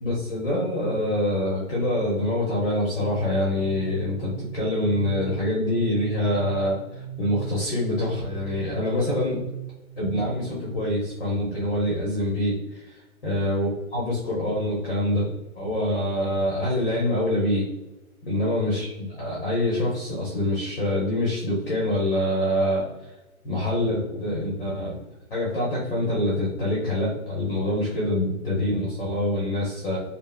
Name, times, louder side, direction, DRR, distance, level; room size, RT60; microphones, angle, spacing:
voice 1, 0.0-9.4 10.0-17.6 18.2-18.9 19.2-23.1 23.4-25.0 25.3-30.0, left 1 dB, 40° left, -5 dB, 1.0 m, -25 dB
sound 1, 3.0-10.5, right 12 dB, 20° right, 1.0 m, -39 dB
5.4 x 2.3 x 2.2 m, 0.99 s
hypercardioid pair, 170°, 43 cm